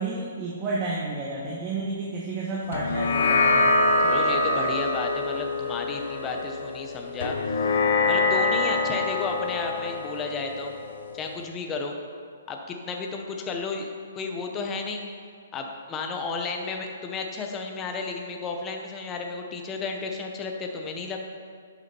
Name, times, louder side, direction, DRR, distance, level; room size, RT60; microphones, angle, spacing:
voice 1, 0.0-3.7, right 3 dB, 25° right, -4 dB, 1.3 m, -31 dB
sound 1, 2.7-11.4, left 2 dB, 70° left, 0.8 m, -25 dB
voice 2, 4.0-7.8 8.1-10.7 11.1-12.0 12.5-13.9 14.1-15.0 15.5-21.2, left 4 dB, 20° left, 2 dB, 1.0 m, -33 dB
10.5 x 7.0 x 4.5 m, 2.1 s
hypercardioid pair, 155°, 0 cm